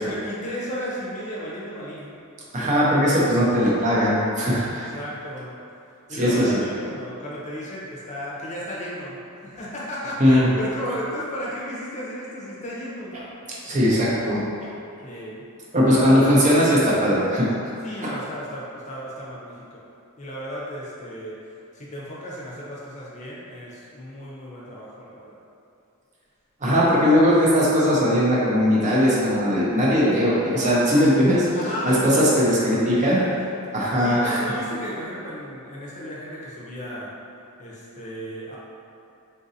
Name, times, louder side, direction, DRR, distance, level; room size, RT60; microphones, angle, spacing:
voice 1, 0.0-2.1 4.7-5.6 6.1-13.1 15.0-15.4 15.9-16.7 17.8-19.8 20.2-21.3 21.7-25.4 31.6-33.4 34.0-37.1 37.6-38.6, equal, 30° left, -6 dB, 0.7 m, -34 dB
voice 2, 2.5-4.9 6.1-6.6 10.2-10.5 13.6-14.4 15.7-17.5 18.0-18.1 26.6-31.5 31.8-33.2 33.7-34.4, equal, 35° right, -6 dB, 0.6 m, -19 dB
3.9 x 2.6 x 2.7 m, 2.6 s
head